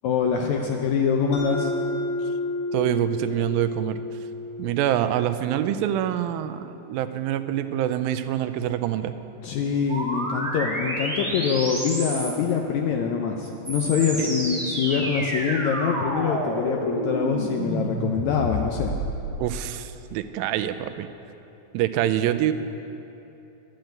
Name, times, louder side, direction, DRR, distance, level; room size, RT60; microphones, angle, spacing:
voice 1, 0.0-1.7 9.4-19.0, left 6 dB, 80° left, 2 dB, 1.6 m, -24 dB
Mallet percussion, 1.3-5.9, left 2 dB, 50° left, 4.0 m, -31 dB
voice 2, 2.7-4.0 4.6-9.1 14.2-14.3 19.4-21.1 21.7-22.5, right 12 dB, 85° right, 11 dB, 2.3 m, -25 dB
sound 1, 9.9-12.5 13.4-19.4, right 1 dB, 30° right, 0.5 m, -29 dB
11.5 x 7.7 x 9.0 m, 2.9 s
omnidirectional pair, 4.1 m